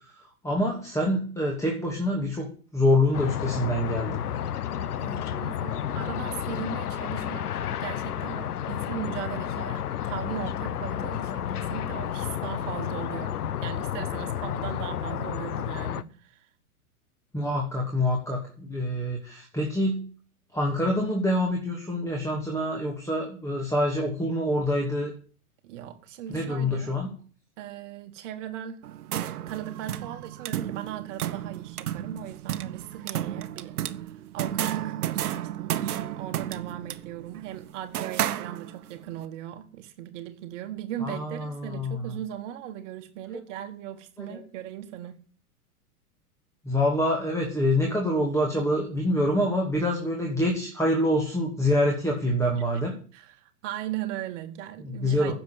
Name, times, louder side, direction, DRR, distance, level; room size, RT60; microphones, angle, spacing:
voice 1, 0.4-4.2 17.3-20.0 20.5-25.1 26.3-27.1 41.0-42.1 44.3-44.4 46.6-52.9 54.8-55.3, left 1 dB, 5° left, 2.5 m, -26 dB
sound 1, 3.1-16.0, left 10 dB, 85° left, 0.8 m, -31 dB
voice 2, 5.0-13.3 13.6-16.5 25.6-26.9 27.6-45.2 52.5-52.6 53.1-55.3, right 11 dB, 55° right, 1.6 m, -38 dB
sound 2, 28.8-39.0, right 11 dB, 75° right, 1.1 m, -32 dB
10.5 x 7.0 x 9.4 m
hypercardioid pair, 115°, 45 cm